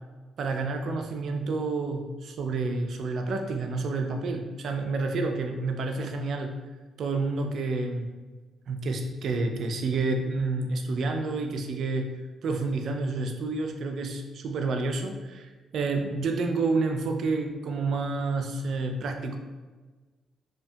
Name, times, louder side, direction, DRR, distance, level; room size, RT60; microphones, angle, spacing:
voice 1, 0.4-6.5 7.0-8.1 8.7-12.1 12.4-19.4, right 3 dB, 65° right, 4 dB, 0.3 m, -29 dB
2.8 x 2.2 x 2.6 m, 1.3 s
cardioid pair, 90°, 0 cm